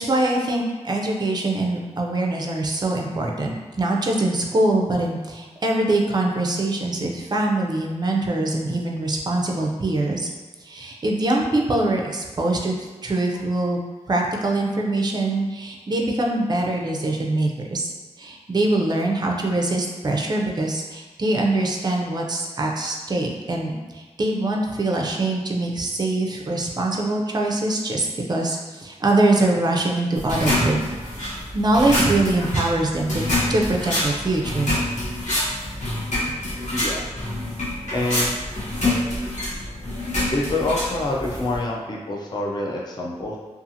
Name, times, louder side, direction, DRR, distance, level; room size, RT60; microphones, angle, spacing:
voice 1, 0.0-10.3 10.6-12.7 13.0-13.8 14.1-17.9 18.2-33.2 33.5-34.8, right 2 dB, 35° right, 0 dB, 0.4 m, -23 dB
sound 1, 30.2-41.6, left 1 dB, 80° left, 0.9 m, -26 dB
voice 2, 36.7-37.1 37.9-38.3 40.3-43.4, left 2 dB, 35° left, -2 dB, 0.4 m, -26 dB
2.7 x 2.4 x 2.6 m, 1.3 s
wide cardioid pair, 60°, 12 cm